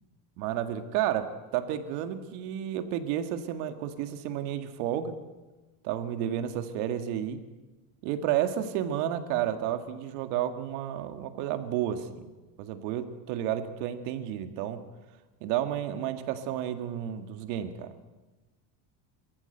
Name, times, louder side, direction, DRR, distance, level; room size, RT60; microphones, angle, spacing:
voice 1, 0.4-5.1 5.8-7.4 8.0-12.3 12.6-14.8 15.4-17.9, right 10 dB, 75° right, 8 dB, 1.9 m, -31 dB
22.5 x 14.5 x 7.9 m, 1.2 s
cardioid pair, 165°, 47 cm